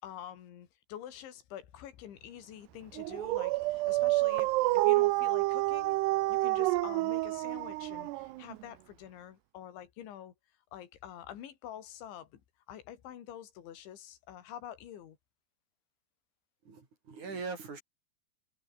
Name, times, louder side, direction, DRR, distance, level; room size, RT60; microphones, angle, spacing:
voice 1, 0.0-6.0 6.3-10.3 10.7-12.4 12.7-15.2, left 10 dB, 80° left, 5.0 m, -47 dB
Dog, 3.0-8.6, right 20 dB, 80° right, 2.5 m, -28 dB
voice 2, 16.7-17.8, right 4 dB, 40° right, 5.7 m, -41 dB
omnidirectional pair, 5.3 m